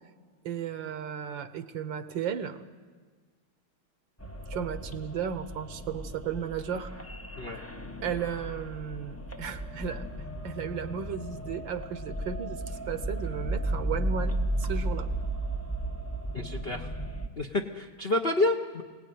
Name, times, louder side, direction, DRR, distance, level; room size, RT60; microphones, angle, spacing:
voice 1, 0.4-2.7 4.5-6.9 8.0-15.1, right 7 dB, 65° right, 11 dB, 1.5 m, -35 dB
sound 1, 4.2-17.3, right 1 dB, 15° left, 0.5 m, -35 dB
voice 2, 16.3-16.9 17.4-18.8, left 2 dB, 45° left, 3 dB, 0.8 m, -29 dB
24.0 x 18.5 x 9.4 m, 1.5 s
omnidirectional pair, 2.4 m